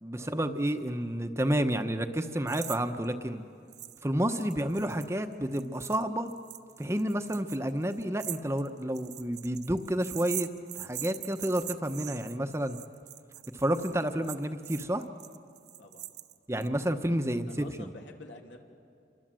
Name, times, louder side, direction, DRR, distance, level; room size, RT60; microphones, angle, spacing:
voice 1, 0.0-3.4 4.0-6.3 6.8-10.5 10.7-12.8 13.5-15.0 16.5-17.9, right 1 dB, 15° right, 7 dB, 0.9 m, -30 dB
sound 1, 2.5-2.8 3.0-3.1 3.7-4.0 4.3-16.7, right 14 dB, 70° right, 0.9 m, -42 dB
voice 2, 15.8-16.1 17.1-18.6, left 2 dB, 85° left, 2 dB, 3.0 m, -49 dB
28.0 x 24.5 x 7.6 m, 2.4 s
head